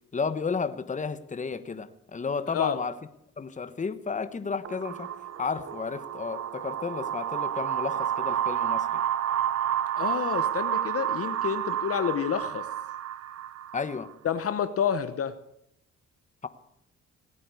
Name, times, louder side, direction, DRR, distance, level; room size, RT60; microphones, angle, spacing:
voice 1, 0.1-2.9 3.4-5.1 5.4-9.0 13.7-14.1 16.4-16.5, left 5 dB, 25° left, 12 dB, 1.1 m, -32 dB
sound 1, 4.6-14.1, right 11 dB, 55° right, 0.8 m, -30 dB
voice 2, 10.0-12.7 14.2-15.3, left 8 dB, 50° left, 11 dB, 0.9 m, -29 dB
17.0 x 9.3 x 8.1 m, 0.78 s
cardioid pair, 90°, 30 cm